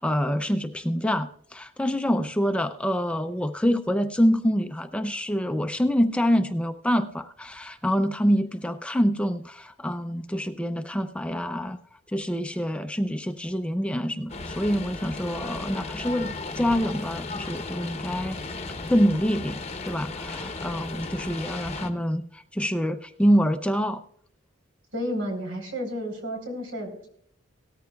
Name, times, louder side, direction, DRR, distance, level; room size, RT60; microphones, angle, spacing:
voice 1, 0.0-11.8 12.1-18.4 18.9-24.0, equal, 5° left, 8 dB, 0.4 m, -26 dB
sound 1, 14.3-21.9, left 3 dB, 30° left, 0.8 m, -35 dB
voice 2, 24.9-27.1, equal, 75° right, 3 dB, 3.8 m, -31 dB
17.5 x 13.5 x 2.3 m, 0.65 s
head